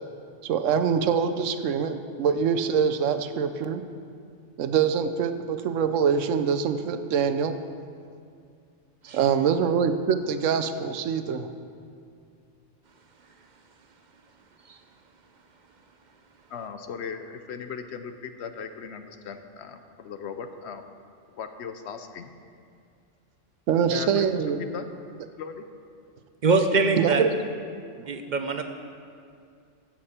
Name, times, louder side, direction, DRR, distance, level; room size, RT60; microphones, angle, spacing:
voice 1, 0.4-3.8 4.6-7.6 9.1-11.5 23.7-24.6 27.0-27.3, right 7 dB, 90° right, 10 dB, 1.0 m, -24 dB
voice 2, 16.5-20.8 21.4-22.3 23.9-24.9 25.4-25.7, left 6 dB, 65° left, 9 dB, 0.9 m, -38 dB
voice 3, 26.4-27.2 28.1-28.6, right 3 dB, 50° right, 6 dB, 0.6 m, -23 dB
15.5 x 7.4 x 4.3 m, 2.3 s
omnidirectional pair, 1.3 m